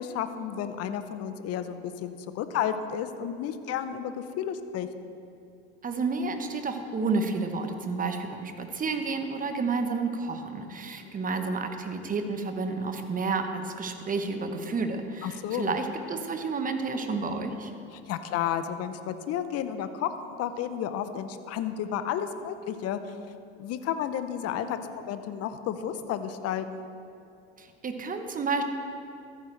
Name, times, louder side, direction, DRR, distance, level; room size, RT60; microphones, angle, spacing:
voice 1, 0.0-4.9 11.0-11.2 15.2-15.8 17.9-23.1 23.6-26.8, left 9 dB, 45° left, 10 dB, 0.8 m, -32 dB
voice 2, 5.8-17.7 27.6-28.6, right 4 dB, 25° right, 7 dB, 1.0 m, -30 dB
14.5 x 8.8 x 3.3 m, 2.6 s
hypercardioid pair, 85°, 33 cm